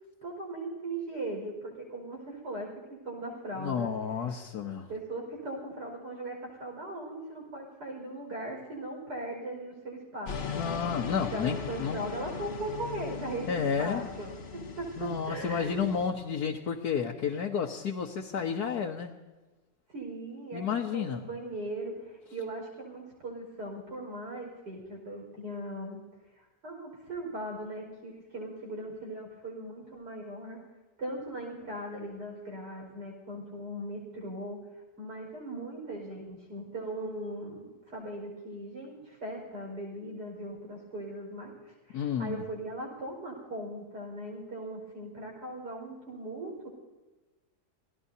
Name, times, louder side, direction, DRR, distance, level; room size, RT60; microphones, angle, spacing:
voice 1, 0.2-3.9 4.9-10.6 11.3-14.3 14.8-15.8 19.9-26.0 26.4-30.6 31.0-34.6 35.0-46.7, right 1 dB, 80° right, 0 dB, 5.9 m, -39 dB
voice 2, 3.6-4.9 10.5-12.0 13.5-14.1 15.0-19.2 20.5-21.2 41.9-42.4, left 7 dB, 70° left, 0 dB, 1.6 m, -31 dB
sound 1, 10.3-16.1, left 6 dB, 45° left, 1.1 m, -39 dB
28.5 x 18.0 x 2.8 m, 1.2 s
omnidirectional pair, 1.8 m